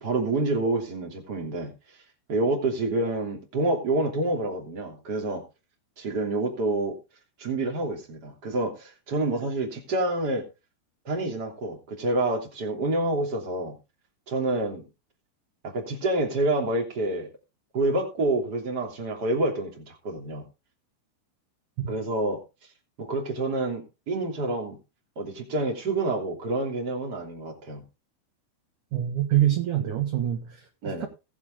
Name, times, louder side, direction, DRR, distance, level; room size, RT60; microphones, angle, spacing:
voice 1, 0.0-1.7 2.3-5.4 6.0-7.0 7.4-10.4 11.0-13.7 14.3-14.8 15.6-17.3 17.7-20.4 21.9-22.4 23.0-24.8 25.2-27.8 30.8-31.1, right 2 dB, 25° right, 1 dB, 2.7 m, -28 dB
voice 2, 28.9-31.1, right 12 dB, 60° right, 5 dB, 2.2 m, -26 dB
20.0 x 7.3 x 3.7 m, 0.28 s
omnidirectional pair, 5.4 m